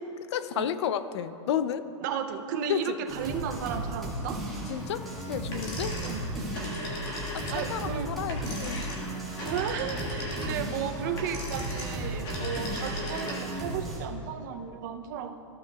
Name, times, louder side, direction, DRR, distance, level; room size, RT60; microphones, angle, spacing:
voice 1, 0.3-1.9 2.7-3.0 4.7-6.0 7.0-9.0 14.6-14.8, left 9 dB, 65° left, 13 dB, 0.4 m, -32 dB
voice 2, 2.0-4.4 6.0-6.2 7.5-8.1 9.4-15.4, right 8 dB, 40° right, 7 dB, 0.5 m, -34 dB
sound 1, 3.1-14.0, right 1 dB, ahead, 1.3 m, -35 dB
sound 2, 5.5-13.6, left 1 dB, 25° left, 1.6 m, -38 dB
15.0 x 7.5 x 2.3 m, 3.0 s
supercardioid pair, 175°, 16 cm